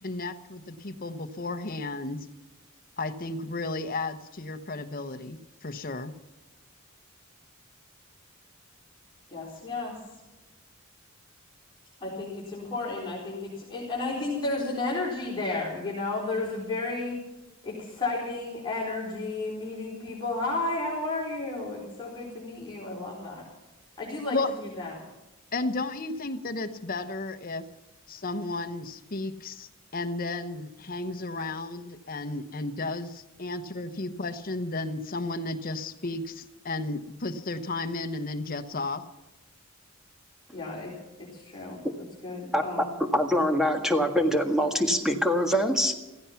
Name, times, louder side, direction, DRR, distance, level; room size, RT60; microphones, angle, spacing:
voice 1, 0.0-2.2 3.0-6.1 24.3-24.5 25.5-27.6 28.1-39.0, left 2 dB, 45° left, 8 dB, 1.0 m, -33 dB
voice 2, 9.3-9.9 12.0-17.2 17.6-23.5 24.0-24.4 24.8-24.9 40.5-40.9 41.2-41.8 42.2-42.9, left 2 dB, 20° left, -6 dB, 4.2 m, -32 dB
voice 3, 42.5-42.9 43.1-46.0, equal, ahead, 4 dB, 1.7 m, -24 dB
16.0 x 15.0 x 5.8 m, 1.1 s
head